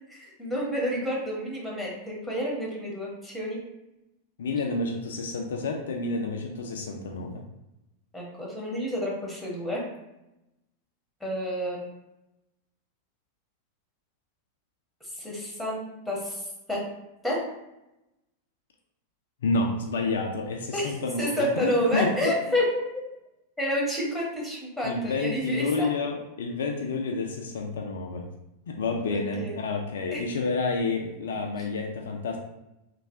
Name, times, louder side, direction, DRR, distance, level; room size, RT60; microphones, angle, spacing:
voice 1, 0.1-3.6 8.1-9.8 11.2-11.9 15.2-16.8 17.2-17.4 20.7-22.8 23.6-25.9 29.1-29.6 30.1-30.2, equal, ahead, -4 dB, 1.0 m, -29 dB
voice 2, 4.4-7.4 19.4-22.3 24.8-28.3 28.7-32.4, left 3 dB, 60° left, 2 dB, 0.3 m, -29 dB
3.1 x 2.3 x 2.5 m, 0.92 s
figure-of-eight pair, 90°, 0 cm